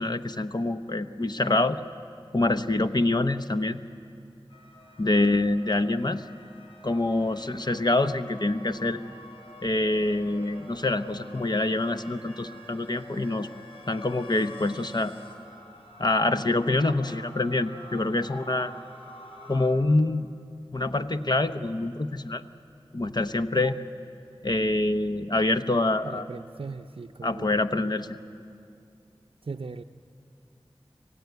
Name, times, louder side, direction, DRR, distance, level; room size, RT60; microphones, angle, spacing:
voice 1, 0.0-1.8 2.3-3.8 5.0-6.2 6.8-9.0 9.6-13.5 13.9-15.1 16.0-18.7 19.5-20.3 20.7-22.4 22.9-23.8 24.4-26.3 27.2-28.2, left 2 dB, 45° left, 9 dB, 0.8 m, -25 dB
sound 1, 4.5-19.7, left 1 dB, 75° left, 3.9 m, -47 dB
voice 2, 26.0-27.6 29.4-29.8, right 4 dB, 70° right, 4 dB, 0.5 m, -38 dB
26.5 x 15.5 x 9.4 m, 2.5 s
wide cardioid pair, 45°, 10 cm